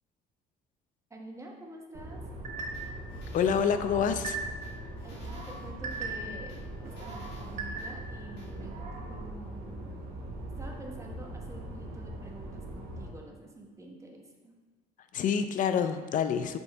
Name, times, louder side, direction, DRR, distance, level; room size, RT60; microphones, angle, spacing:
voice 1, 1.1-2.2 4.4-4.5 5.0-6.6 6.8-9.8 10.6-14.6, right 2 dB, 15° right, 0 dB, 1.1 m, -47 dB
sound 1, 1.9-13.1, right 1 dB, 65° right, 1.5 m, -41 dB
sound 2, 2.4-3.0 3.5-4.7 5.1-6.4 6.9-8.2 8.6-9.1, right 4 dB, 45° right, 1.2 m, -40 dB
sound 3, 2.7-4.2 4.6-6.0 6.5-7.9 8.4-8.5, left 2 dB, 75° left, 2.1 m, -56 dB
voice 2, 3.3-4.4 15.1-16.6, left 7 dB, 50° left, 9 dB, 0.5 m, -27 dB
8.3 x 4.4 x 3.5 m, 1.4 s
cardioid pair, 110°, 17 cm